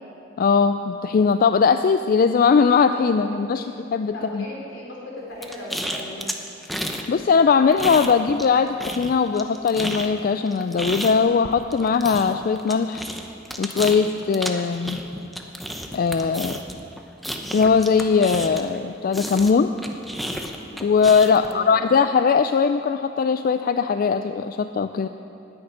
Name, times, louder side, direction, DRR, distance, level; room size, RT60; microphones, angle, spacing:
voice 1, 0.4-4.5 7.1-13.1 13.6-15.0 15.9-16.6 17.5-19.7 20.8-25.1, left 5 dB, 50° left, 9 dB, 0.3 m, -20 dB
voice 2, 4.1-4.8 5.3-6.3 21.4-21.7, left 1 dB, 80° left, -3 dB, 3.5 m, -37 dB
sound 1, 5.4-7.1 7.3-8.5 8.8-18.8 19.1-21.5, equal, ahead, 0.8 m, -32 dB
10.5 x 8.7 x 10.0 m, 2.8 s
head